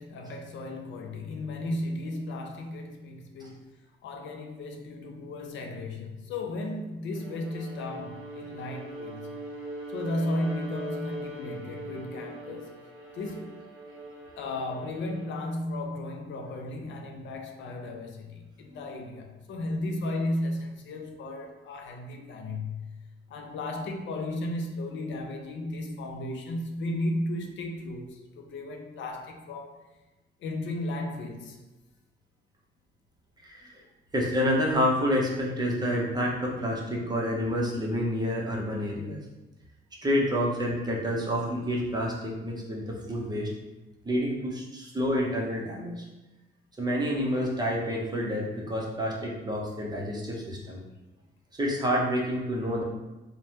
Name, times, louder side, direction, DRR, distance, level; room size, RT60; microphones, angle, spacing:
voice 1, 0.0-3.7 4.0-9.3 9.9-12.7 13.1-13.6 14.4-22.9 23.3-29.8 30.4-31.6, left 1 dB, 70° left, 3 dB, 0.4 m, -34 dB
Bowed string instrument, 7.1-15.5, right 1 dB, 80° right, 0.6 m, -41 dB
voice 2, 33.4-33.8 34.1-39.2 40.0-43.5 44.0-46.0 46.8-50.8 51.6-52.8, equal, 20° right, -2 dB, 0.7 m, -28 dB
3.2 x 2.1 x 2.8 m, 1.1 s
cardioid pair, 90°, 20 cm